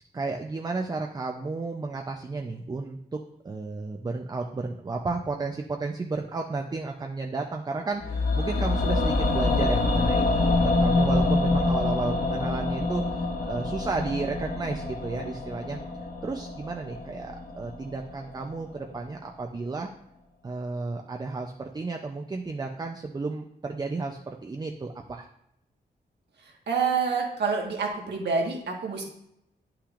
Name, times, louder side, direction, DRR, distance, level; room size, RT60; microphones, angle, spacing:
voice 1, 0.1-3.2 3.4-15.8 16.2-19.9 20.4-25.3, right 3 dB, 25° right, 3 dB, 0.5 m, -33 dB
sound 1, 8.0-18.1 18.4-18.5, left 2 dB, 55° left, 1.0 m, -26 dB
voice 2, 26.7-29.1, right 5 dB, 85° right, 0 dB, 1.5 m, -27 dB
10.0 x 5.8 x 2.5 m, 0.79 s
wide cardioid pair, 120°, 17 cm